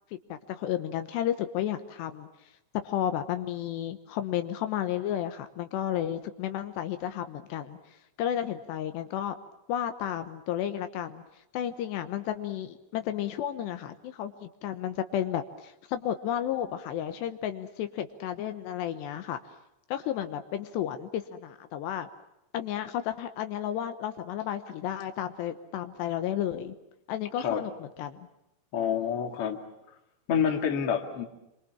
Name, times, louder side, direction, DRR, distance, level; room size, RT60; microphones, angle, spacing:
voice 1, 0.3-2.3 2.7-7.8 8.2-9.4 9.7-11.2 11.5-19.4 19.9-22.1 22.5-26.8 27.1-28.3, left 10 dB, 75° left, 8 dB, 3.2 m, -32 dB
voice 2, 28.7-29.6 30.3-31.2, left 8 dB, 40° left, 4 dB, 2.5 m, -27 dB
27.5 x 25.5 x 7.3 m, 0.88 s
omnidirectional pair, 5.1 m